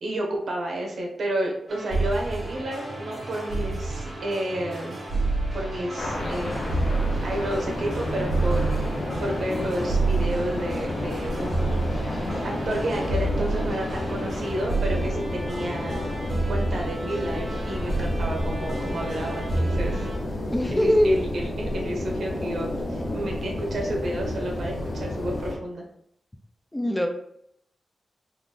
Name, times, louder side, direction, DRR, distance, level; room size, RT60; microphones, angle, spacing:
voice 1, 0.0-5.0 5.5-8.9 9.2-20.1 20.7-25.8, right 1 dB, 75° right, 0 dB, 0.9 m, -31 dB
sound 1, 1.7-20.2, right 2 dB, 50° right, 1.5 m, -29 dB
sound 2, 6.0-25.6, left 1 dB, 60° left, 0.8 m, -30 dB
voice 2, 20.5-21.2 26.7-27.1, left 1 dB, 10° left, 4 dB, 0.4 m, -21 dB
3.8 x 2.4 x 3.3 m, 0.73 s
wide cardioid pair, 135°, 0 cm